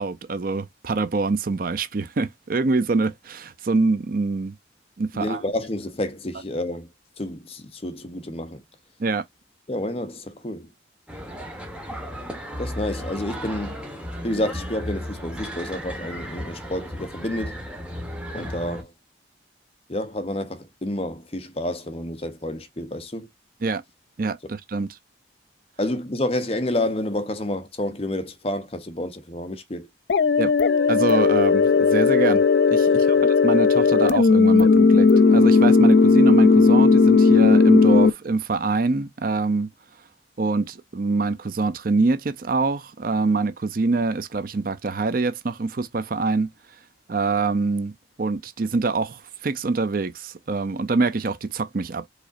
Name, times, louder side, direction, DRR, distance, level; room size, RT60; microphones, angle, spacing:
voice 1, 0.0-4.5 5.0-5.4 9.0-9.2 23.6-23.8 24.2-24.9 30.4-30.5 30.9-39.7 40.4-46.5 47.1-47.9 48.2-52.1, right 3 dB, 45° right, 0.5 m, -25 dB
voice 2, 5.1-6.9 7.2-8.6 9.7-10.7 12.6-13.8 14.2-17.6 18.3-18.9 19.9-23.3 25.8-29.9, left 1 dB, 30° left, 0.9 m, -29 dB
sound 1, 11.1-18.8, equal, 5° right, 1.3 m, -34 dB
sound 2, 30.1-38.1, left 4 dB, 60° left, 0.4 m, -16 dB
4.9 x 4.0 x 2.6 m
head